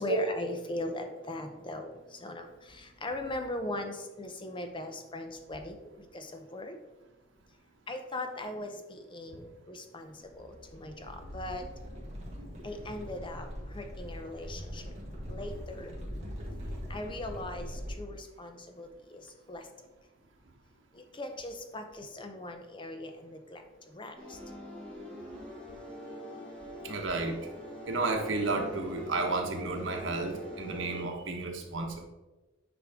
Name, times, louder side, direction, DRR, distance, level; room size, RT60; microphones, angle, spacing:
voice 1, 0.0-1.9 2.2-6.7 7.9-11.6 12.6-13.5 13.7-14.8 15.3-15.9 16.9-17.7 18.0-19.2 19.5-19.6 21.2-23.6 23.9-24.4 31.4-31.5, left 1 dB, 25° left, 6 dB, 0.7 m, -39 dB
sound 1, 10.2-17.9, equal, 35° right, 2.3 m, -42 dB
sound 2, 24.2-31.0, equal, 5° left, 2.0 m, -43 dB
voice 2, 26.8-27.4 27.9-32.1, right 3 dB, 75° right, 2 dB, 1.3 m, -32 dB
9.6 x 5.3 x 3.7 m, 1.1 s
head